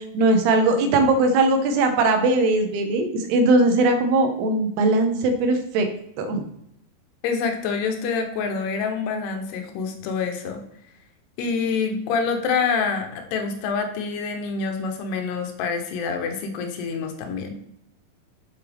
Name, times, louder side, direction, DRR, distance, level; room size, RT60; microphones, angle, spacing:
voice 1, 0.1-5.9 6.2-6.4, right 2 dB, 85° right, 6 dB, 3.0 m, -20 dB
voice 2, 7.2-10.6 11.4-17.6, left 5 dB, 85° left, 4 dB, 3.0 m, -26 dB
7.3 x 7.0 x 3.4 m, 0.73 s
omnidirectional pair, 4.6 m